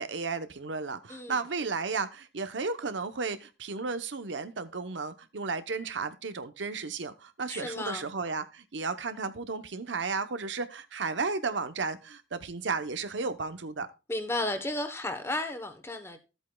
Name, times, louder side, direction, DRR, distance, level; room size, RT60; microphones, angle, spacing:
voice 1, 0.0-13.9, right 4 dB, 85° right, 0.8 m, -33 dB
voice 2, 7.5-8.1 14.1-16.2, left 1 dB, 15° left, 1.0 m, -33 dB
13.5 x 8.2 x 2.3 m
head